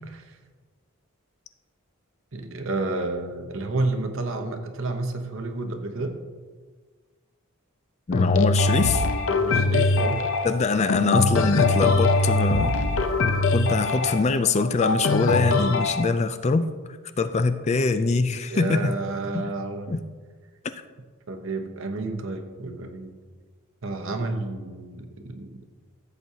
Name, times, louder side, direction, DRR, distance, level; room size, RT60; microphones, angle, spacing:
voice 1, 2.3-6.2 9.3-10.3 18.5-19.9 21.3-23.1 23.8-25.6, right 2 dB, 60° right, 5 dB, 1.0 m, -30 dB
sound 1, 8.1-16.0, left 3 dB, 60° left, 0.7 m, -22 dB
voice 2, 8.1-9.0 10.4-12.8 13.5-16.7 17.2-19.0 19.3-19.5 19.9-20.0, left 4 dB, 30° left, 10 dB, 0.4 m, -23 dB
15.0 x 7.8 x 2.8 m, 1.5 s
head